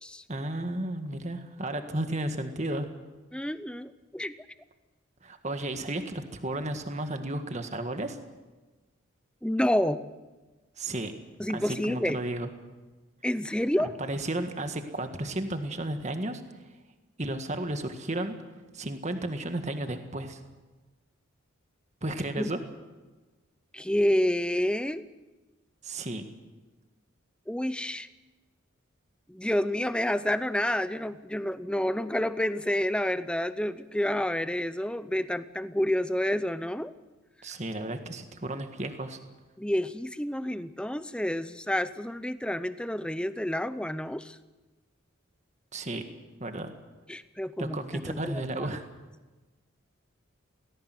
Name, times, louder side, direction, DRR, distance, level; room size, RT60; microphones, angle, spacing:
voice 1, 0.3-2.9 5.2-8.2 10.8-11.1 11.5-12.5 13.8-16.4 17.2-18.4 18.7-20.4 22.0-22.6 25.8-26.2 37.4-39.2 45.7-46.0 46.4-46.7 47.6-48.8, right 1 dB, 35° right, 7 dB, 1.7 m, -33 dB
voice 2, 3.3-4.4 9.4-10.1 11.4-12.2 13.2-13.9 22.4-22.5 23.7-25.1 27.5-28.1 29.3-36.9 39.6-44.4 47.1-48.7, left 1 dB, 5° left, 13 dB, 0.7 m, -29 dB
18.5 x 17.5 x 9.5 m, 1.2 s
head